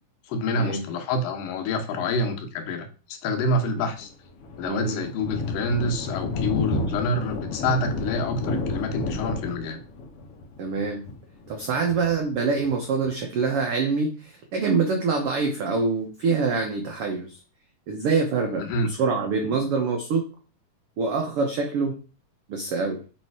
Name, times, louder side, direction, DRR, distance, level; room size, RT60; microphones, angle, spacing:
voice 1, 0.3-4.1 4.6-9.8 18.6-18.9, left 1 dB, 90° left, 5 dB, 2.7 m, -27 dB
Thunder, 4.0-13.1, left 3 dB, 70° left, 1.4 m, -31 dB
voice 2, 4.6-5.0 10.6-11.0 11.5-17.4 17.9-20.2 21.0-21.9 22.5-23.0, right 4 dB, 85° right, 3 dB, 1.2 m, -25 dB
7.3 x 3.3 x 4.6 m, 0.36 s
omnidirectional pair, 3.8 m